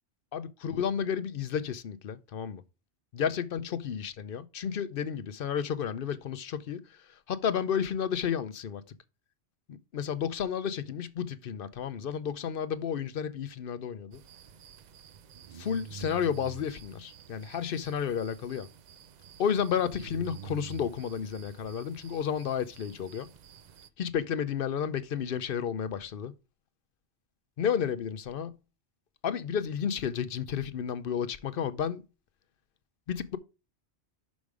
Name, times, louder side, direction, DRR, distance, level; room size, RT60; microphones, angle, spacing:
voice 1, 0.3-2.6 3.1-8.9 9.7-14.2 15.5-18.7 19.4-23.3 24.0-26.3 27.6-28.5 29.2-32.0 33.1-33.4, left 8 dB, 60° left, 0.7 m, -32 dB
sound 1, 14.1-23.9, right 9 dB, 60° right, 0.4 m, -48 dB
6.2 x 5.2 x 4.7 m
omnidirectional pair, 1.2 m